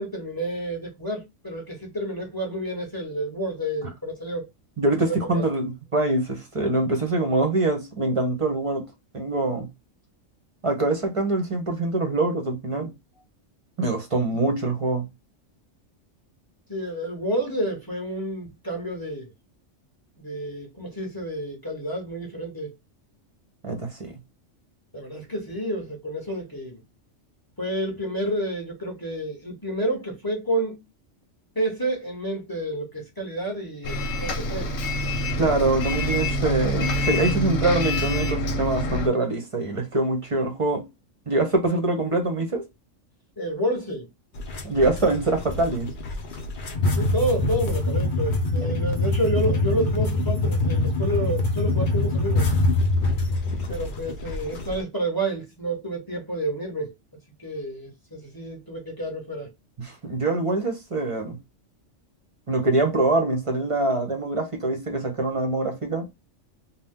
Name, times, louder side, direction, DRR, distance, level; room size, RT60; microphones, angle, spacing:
voice 1, 0.0-4.5 5.1-5.4 16.7-19.3 20.2-22.7 24.9-26.8 27.6-30.8 31.5-34.7 43.4-44.1 47.0-52.5 53.7-56.9 57.4-59.5, right 1 dB, 20° left, 0.8 m, -29 dB
voice 2, 4.8-8.9 9.1-9.7 10.6-12.9 13.8-15.1 23.6-24.1 35.4-40.9 41.3-42.7 44.6-45.9 48.6-48.8 53.4-53.6 59.8-61.4 62.5-66.1, right 2 dB, 30° right, 0.7 m, -24 dB
Bus, 33.8-39.1, equal, 85° left, 1.0 m, -26 dB
sound 1, 44.4-54.8, left 2 dB, 50° left, 0.7 m, -25 dB
2.7 x 2.1 x 3.5 m
omnidirectional pair, 1.3 m